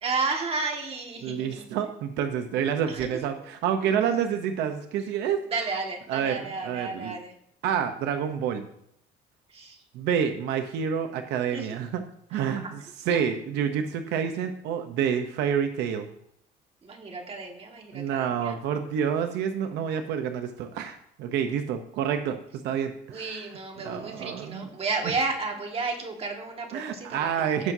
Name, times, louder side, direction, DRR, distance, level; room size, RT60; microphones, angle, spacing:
voice 1, 0.0-1.7 3.0-3.1 5.5-7.3 9.5-9.8 11.5-11.6 12.3-12.7 13.1-13.2 16.8-18.6 23.1-27.2 27.6-27.7, right 4 dB, 35° right, 2 dB, 1.9 m, -32 dB
voice 2, 1.2-5.4 6.1-7.1 7.6-8.7 9.9-12.0 12.3-16.1 17.9-22.4 22.6-24.7 26.7-27.7, right 8 dB, 85° right, 7 dB, 0.8 m, -28 dB
15.5 x 5.9 x 2.7 m, 0.72 s
cardioid pair, 110°, 17 cm